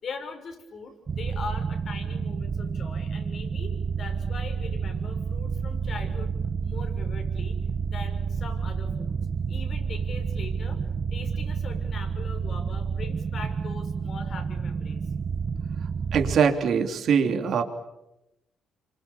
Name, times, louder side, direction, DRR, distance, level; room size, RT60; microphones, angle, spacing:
voice 1, 0.0-6.3 6.6-7.5 7.9-9.2 9.5-10.8 11.1-15.0, left 4 dB, 55° left, 5 dB, 6.6 m, -41 dB
sound 1, 1.1-16.4, right 6 dB, 40° right, 1.5 m, -30 dB
voice 2, 16.1-17.6, right 6 dB, 65° right, 5 dB, 3.2 m, -22 dB
28.0 x 25.0 x 7.1 m, 0.89 s
cardioid pair, 90°, 0 cm